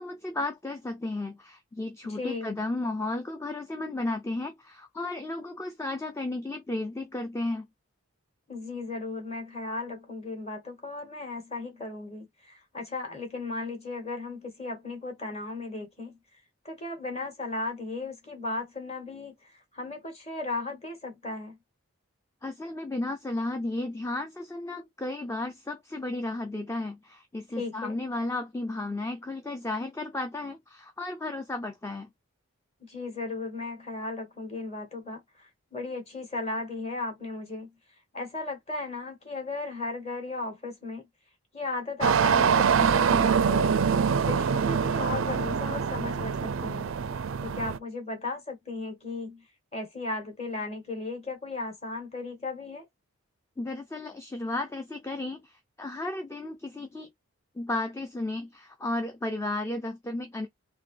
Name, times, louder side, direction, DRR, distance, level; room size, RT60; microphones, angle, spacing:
voice 1, 0.0-7.7 22.4-32.1 53.6-57.1 57.6-60.5, left 2 dB, 10° left, 0.4 m, -33 dB
voice 2, 2.1-2.5 8.5-16.2 16.6-21.6 27.5-28.0 32.8-37.8 38.1-41.1 41.5-43.8 44.2-49.4 49.7-52.9, left 3 dB, 30° left, 1.9 m, -36 dB
sound 1, 42.0-47.8, right 6 dB, 60° right, 0.4 m, -24 dB
3.9 x 2.9 x 3.2 m
head